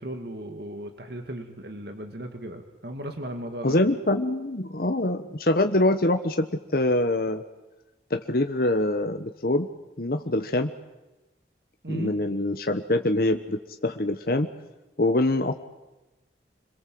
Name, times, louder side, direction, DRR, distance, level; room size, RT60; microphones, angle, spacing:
voice 1, 0.0-3.8 11.8-12.1, right 1 dB, 65° right, 6 dB, 2.1 m, -36 dB
voice 2, 3.6-6.5 6.7-7.4 8.1-9.7 10.0-10.7 11.9-14.5 15.0-15.6, left 1 dB, 55° left, 6 dB, 1.2 m, -24 dB
27.0 x 22.0 x 7.8 m, 1.0 s
head